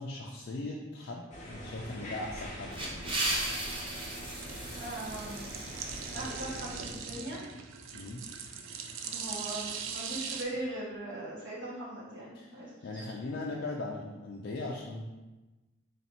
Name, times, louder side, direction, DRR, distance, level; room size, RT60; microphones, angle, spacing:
voice 1, 0.0-3.2 7.9-8.2 12.3-15.0, left 2 dB, 55° left, -2 dB, 0.4 m, -39 dB
sound 1, 1.3-6.8, equal, 35° left, 0.7 m, -44 dB
sound 2, 1.5-10.4, right 6 dB, 75° right, 0.4 m, -42 dB
sound 3, 2.4-6.9, right 1 dB, 25° right, 0.6 m, -37 dB
voice 2, 4.8-5.5 6.1-7.4 9.0-13.0, right 1 dB, 60° right, -8 dB, 1.4 m, -40 dB
3.2 x 2.8 x 4.2 m, 1.1 s
head